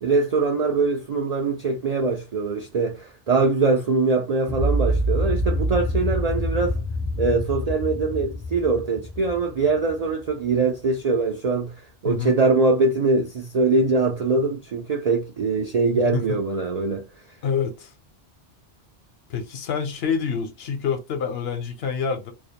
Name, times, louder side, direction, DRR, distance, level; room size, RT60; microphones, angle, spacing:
voice 1, 0.0-6.8 7.2-11.7 12.0-17.1, right 3 dB, 60° right, 0.4 m, -22 dB
sound 1, 4.4-10.5, equal, 30° left, 0.3 m, -26 dB
voice 2, 15.9-16.4 17.4-17.9 19.3-22.3, left 6 dB, 65° left, 0.8 m, -27 dB
2.3 x 2.0 x 2.8 m
omnidirectional pair, 1.2 m